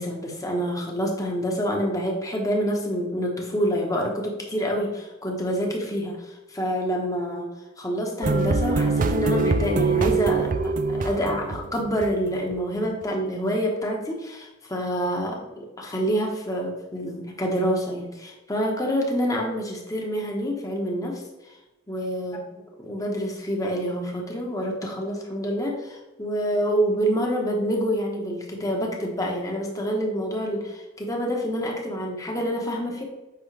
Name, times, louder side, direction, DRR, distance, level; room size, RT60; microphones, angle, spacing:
voice 1, 0.0-7.5 7.8-21.2 21.9-22.4 22.8-33.0, equal, 20° left, 0 dB, 1.4 m, -27 dB
sound 1, 8.2-12.6, right 3 dB, 45° right, 0.4 m, -24 dB
8.2 x 5.7 x 3.5 m, 1.0 s
head